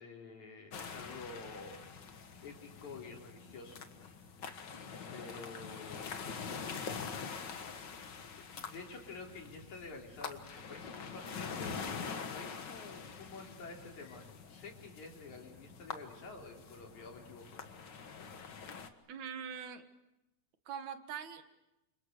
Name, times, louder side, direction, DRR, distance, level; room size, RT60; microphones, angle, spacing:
voice 1, 0.0-1.9 2.4-3.8 5.1-6.2 8.6-17.6, left 3 dB, 75° left, 1 dB, 5.1 m, -49 dB
sound 1, 0.7-18.9, left 5 dB, 45° left, 1.7 m, -45 dB
voice 2, 19.1-19.8 20.7-21.4, right 7 dB, 75° right, 8 dB, 2.9 m, -42 dB
29.5 x 26.5 x 6.7 m, 0.96 s
omnidirectional pair, 3.3 m